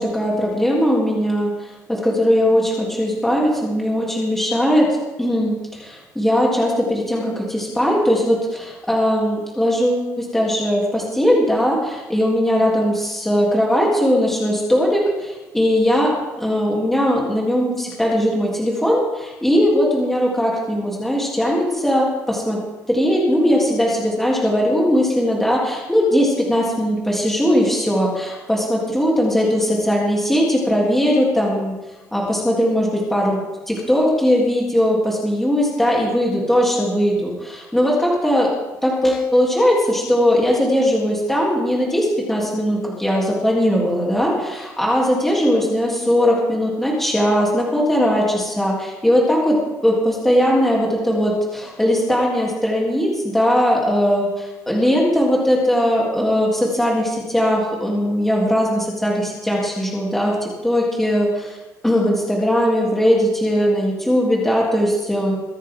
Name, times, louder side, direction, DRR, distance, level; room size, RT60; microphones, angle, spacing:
voice 1, 0.0-4.9 5.2-22.6 22.9-31.7 32.1-33.4 33.7-38.5 38.8-49.6 49.8-61.6 61.8-65.3, equal, 5° left, -3 dB, 3.5 m, -19 dB
23.5 x 9.9 x 3.9 m, 1.1 s
cardioid pair, 165°, 6 cm